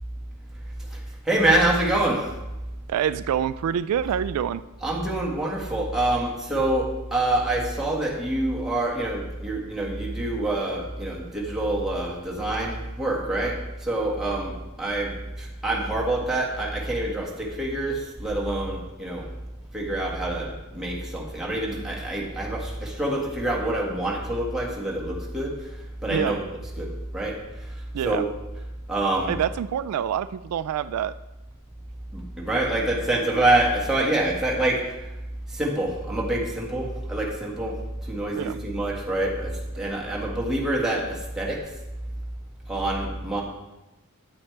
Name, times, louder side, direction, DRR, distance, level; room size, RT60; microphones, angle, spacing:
voice 1, 1.3-2.2 4.8-13.6 13.8-14.5 14.8-15.1 15.4-19.2 19.7-25.5 26.0-26.4 26.8-26.9 27.1-27.3 28.0-28.2 28.9-29.3 32.1-34.8 35.5-37.7 38.1-41.6 42.7-43.4, right 1 dB, 5° right, -4 dB, 1.7 m, -26 dB
voice 2, 2.9-4.6 26.1-26.4 27.9-28.2 29.3-31.1 38.3-38.6, right 9 dB, 90° right, 16 dB, 0.3 m, -26 dB
9.3 x 8.5 x 3.3 m, 1.0 s
head